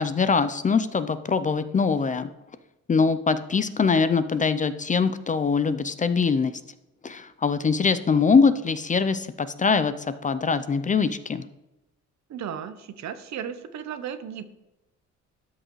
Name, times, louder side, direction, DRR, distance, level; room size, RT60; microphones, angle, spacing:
voice 1, 0.0-2.3 2.9-6.5 7.0-11.5, left 5 dB, 25° left, 12 dB, 0.4 m, -23 dB
voice 2, 12.3-14.5, right 8 dB, 65° right, 11 dB, 0.8 m, -35 dB
13.0 x 6.4 x 3.1 m, 0.95 s
cardioid pair, 90°, 30 cm